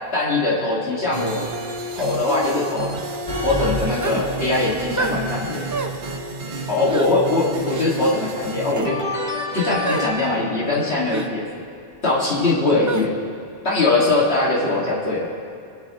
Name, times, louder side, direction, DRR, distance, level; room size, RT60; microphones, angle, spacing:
voice 1, 0.1-1.5 1.9-2.9 3.4-5.6 6.7-9.0 9.5-11.4 12.0-13.1 13.6-15.3, left 2 dB, 80° left, -6 dB, 2.3 m, -21 dB
sound 1, 1.1-8.7, right 3 dB, 55° right, 0.9 m, -31 dB
sound 2, 3.3-6.3 8.8-10.1, left 2 dB, 30° left, 2.0 m, -30 dB
sound 3, 4.0-4.3 5.0-5.2 5.7-6.0 6.9-7.1 7.7-7.9 8.6-8.9 9.9-10.1 11.1-11.3 12.9-13.1, right 3 dB, 25° right, 0.4 m, -27 dB
23.0 x 10.5 x 3.0 m, 2.3 s
omnidirectional pair, 1.1 m